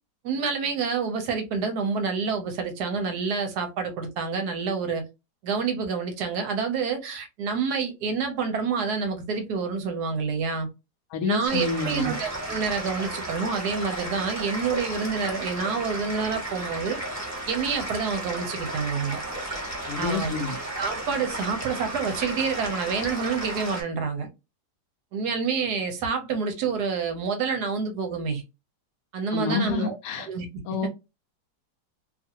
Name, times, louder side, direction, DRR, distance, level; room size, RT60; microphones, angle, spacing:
voice 1, 0.2-5.0 5.4-10.7 11.2-17.0 17.5-19.2 20.0-20.4 20.8-24.3 25.1-28.4 29.1-30.0 30.3-30.5 30.8-30.9, right 5 dB, 75° right, 1.1 m, -28 dB
voice 2, 11.1-12.1 19.9-20.6 29.3-30.3 30.7-30.9, left 4 dB, 70° left, 0.9 m, -28 dB
sound 1, 11.5-23.8, right 1 dB, 10° right, 1.1 m, -34 dB
2.7 x 2.4 x 2.7 m
omnidirectional pair, 1.8 m